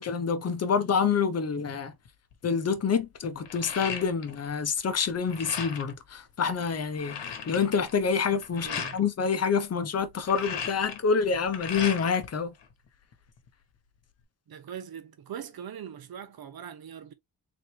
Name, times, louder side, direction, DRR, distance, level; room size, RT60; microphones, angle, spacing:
voice 1, 0.0-1.9 2.4-12.5, left 6 dB, 35° left, 0.7 m, -27 dB
sound 1, 2.0-2.3 2.7-4.5 4.8-6.0 6.5-6.6 6.8-9.0 10.0-12.3 12.6-13.5, left 7 dB, 85° left, 1.3 m, -37 dB
voice 2, 8.6-9.0 14.5-17.1, right 8 dB, 60° right, 0.9 m, -41 dB
4.0 x 3.1 x 3.2 m
wide cardioid pair, 155°, 41 cm